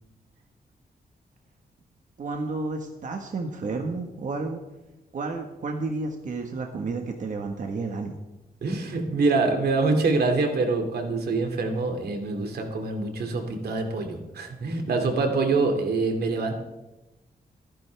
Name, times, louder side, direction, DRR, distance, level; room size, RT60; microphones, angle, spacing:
voice 1, 2.2-4.6 5.1-8.2, right 3 dB, 55° right, 3 dB, 1.5 m, -31 dB
voice 2, 8.6-16.5, right 3 dB, 85° right, 4 dB, 2.5 m, -25 dB
27.5 x 10.5 x 3.5 m, 1.1 s
wide cardioid pair, 165°, 16 cm